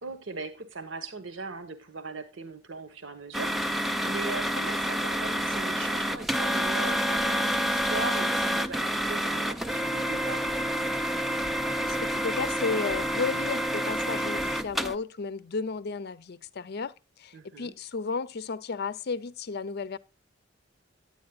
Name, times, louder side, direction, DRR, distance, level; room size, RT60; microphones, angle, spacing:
voice 1, 0.0-10.5 17.3-17.7, right 3 dB, 75° right, 1.2 m, -39 dB
sound 1, 3.3-14.9, equal, ahead, 0.4 m, -28 dB
voice 2, 11.9-16.9 17.2-20.0, left 4 dB, 55° left, 0.5 m, -33 dB
9.6 x 9.2 x 2.3 m
head